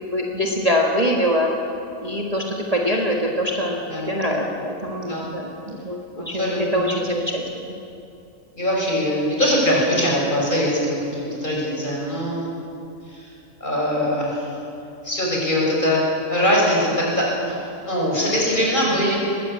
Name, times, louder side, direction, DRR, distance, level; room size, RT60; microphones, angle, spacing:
voice 1, 0.1-1.5 2.0-7.7, equal, 30° right, -1 dB, 1.9 m, -24 dB
voice 2, 3.9-4.4 5.0-5.3 6.2-6.9 8.6-12.6 13.1-13.3 13.6-14.5 15.0-17.6 17.8-19.2, equal, 35° left, -3 dB, 6.0 m, -22 dB
21.0 x 16.5 x 8.6 m, 2.7 s
omnidirectional pair, 1.4 m